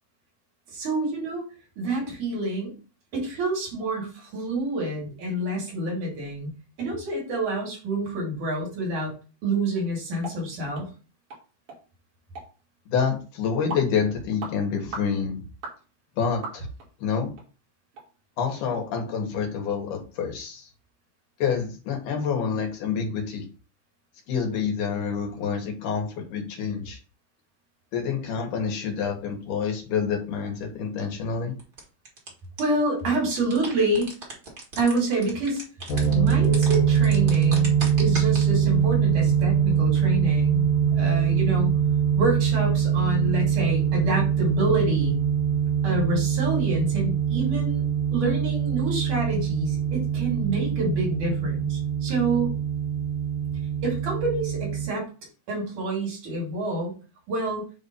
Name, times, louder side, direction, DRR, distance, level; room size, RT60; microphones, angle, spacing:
voice 1, 0.7-1.4 1.8-2.7 3.1-6.5 6.8-9.1 9.4-10.9 32.6-34.1 34.8-35.6 36.1-40.6 40.9-41.7 42.2-45.2 45.8-47.8 48.1-52.5 53.8-55.1 55.5-56.9 57.3-57.6, right 2 dB, 80° right, -2 dB, 4.2 m, -27 dB
sound 1, 10.2-10.4 10.7-10.9 11.3-11.4 11.7-11.8 12.4-12.5 13.0-13.1 13.7-13.9 14.4-14.6 14.9-15.1 15.6-15.8 16.4-16.9 17.4-17.5 17.9-18.1 18.5-18.6, right 3 dB, 60° right, 3.3 m, -37 dB
voice 2, 12.9-15.4 16.2-16.7 17.0-17.3 18.4-20.7 21.4-23.5 24.3-27.0 27.9-31.5, left 6 dB, 85° left, 2 dB, 3.0 m, -27 dB
sound 2, 31.6-32.3 32.6-32.7 33.0-38.4, right 3 dB, 35° right, 2.0 m, -35 dB
sound 3, 35.9-54.9, right 8 dB, 70° left, 2.2 m, -23 dB
7.8 x 2.7 x 5.4 m, 0.34 s
omnidirectional pair, 3.5 m